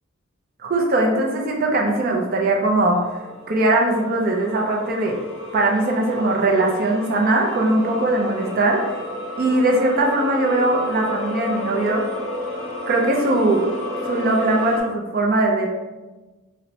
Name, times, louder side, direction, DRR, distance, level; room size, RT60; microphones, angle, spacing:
voice 1, 0.6-5.2 5.5-9.0 9.4-12.0 12.9-13.7 14.0-15.7, right 2 dB, 45° right, 0 dB, 0.4 m, -20 dB
sound 1, 2.1-14.8, left 1 dB, 5° left, 0.9 m, -32 dB
4.1 x 2.0 x 2.6 m, 1.2 s
head